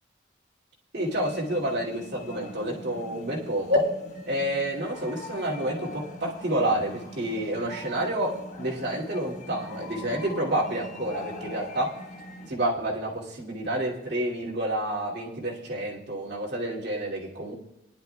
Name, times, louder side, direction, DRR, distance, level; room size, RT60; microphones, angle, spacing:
voice 1, 0.9-3.8 4.2-11.9 12.5-17.5, right 1 dB, 55° right, -5 dB, 2.7 m, -29 dB
sound 1, 1.0-12.5, left 1 dB, 40° left, 1.2 m, -42 dB
22.0 x 11.0 x 2.3 m, 0.89 s
head